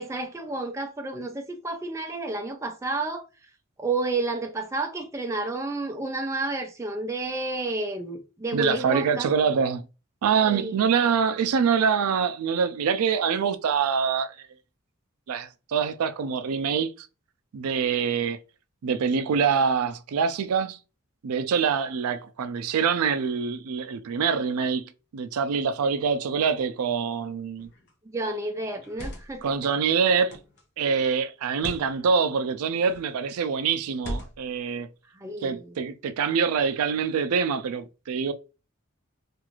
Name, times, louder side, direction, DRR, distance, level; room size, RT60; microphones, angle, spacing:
voice 1, 0.0-3.2 3.8-9.3 10.4-10.7 28.1-29.4 35.1-35.7, right 2 dB, 15° right, 0.3 m, -30 dB
voice 2, 8.5-9.8 10.2-14.5 15.3-17.1 17.5-18.4 18.8-20.8 21.2-27.7 29.4-30.4 30.8-34.9 35.4-38.3, right 6 dB, 90° right, 0.4 m, -25 dB
sound 1, 27.6-27.9 28.7-29.5 30.3-30.6 31.5-31.9 32.8-33.2 34.0-34.6, equal, 50° left, 0.6 m, -38 dB
2.5 x 2.4 x 2.9 m
head